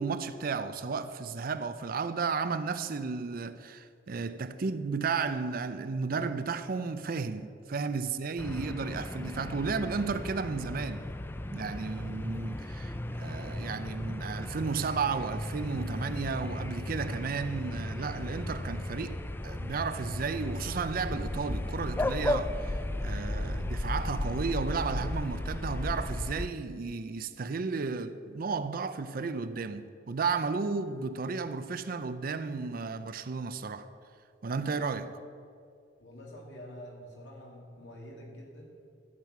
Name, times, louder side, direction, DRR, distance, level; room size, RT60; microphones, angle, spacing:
voice 1, 0.0-11.1 11.5-33.9 34.4-35.1, right 4 dB, 50° right, 0.5 m, -33 dB
sound 1, 8.4-26.5, left 1 dB, 10° left, 0.3 m, -35 dB
voice 2, 36.0-38.7, equal, 75° left, 2.5 m, -47 dB
12.5 x 7.3 x 6.0 m
head